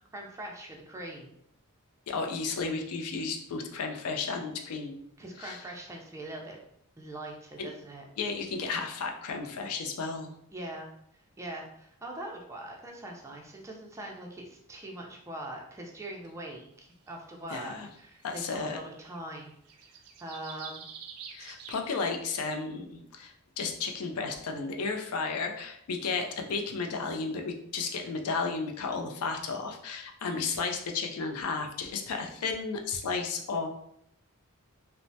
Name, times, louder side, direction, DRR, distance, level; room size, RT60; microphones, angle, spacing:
voice 1, 0.1-1.3 5.2-6.6 7.0-8.0 10.5-10.9 11.4-20.8, right 1 dB, 15° right, 0 dB, 0.4 m, -42 dB
voice 2, 2.1-5.0 5.4-5.6 7.6-7.7 8.2-10.3 17.5-17.9 18.2-18.8 21.3-33.7, left 4 dB, 75° left, 4 dB, 0.4 m, -33 dB
sound 1, 17.1-17.2 18.3-18.4 18.6-21.8, right 6 dB, 80° right, 0.4 m, -46 dB
3.1 x 2.0 x 2.6 m, 0.73 s
head